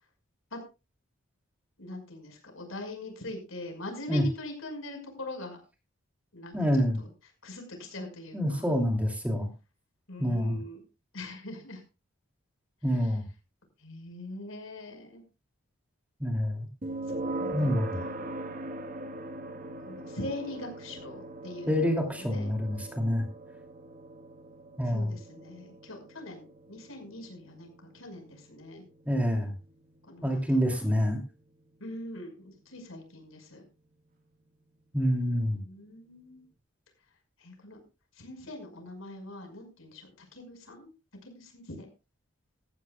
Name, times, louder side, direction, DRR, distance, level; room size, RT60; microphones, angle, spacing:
voice 1, 1.8-5.6 6.3-6.7 7.0-7.1 7.4-8.7 10.1-10.8 11.1-11.8 13.0-13.1 13.8-15.2 17.2-18.1 19.9-22.5 24.9-28.8 30.1-30.8 31.8-33.6 35.5-36.4 37.4-37.8 38.2-40.9 41.2-41.9, left 1 dB, 75° left, 4 dB, 5.7 m, -42 dB
voice 2, 6.5-7.0 8.3-9.5 10.2-10.6 12.8-13.3 16.2-16.7 17.5-18.0 21.7-23.2 24.8-25.1 29.1-29.5 30.2-31.2 34.9-35.6, equal, 5° right, 3 dB, 2.8 m, -27 dB
sound 1, 16.8-31.8, right 2 dB, 40° right, 1.5 m, -41 dB
17.0 x 15.0 x 2.4 m, 0.30 s
head